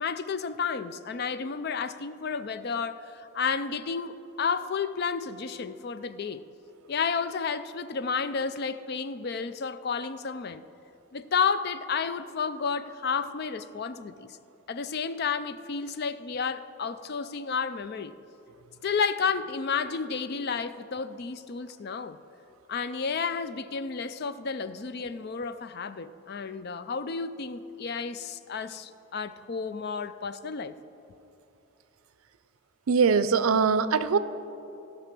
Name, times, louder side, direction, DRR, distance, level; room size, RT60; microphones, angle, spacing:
voice 1, 0.0-6.4 6.9-10.6 11.1-14.3 14.7-18.1 18.8-22.2 22.7-30.7, left 5 dB, 50° left, 13 dB, 0.4 m, -31 dB
voice 2, 32.9-34.2, right 5 dB, 85° right, 14 dB, 0.5 m, -22 dB
16.0 x 6.0 x 6.0 m, 2.9 s
head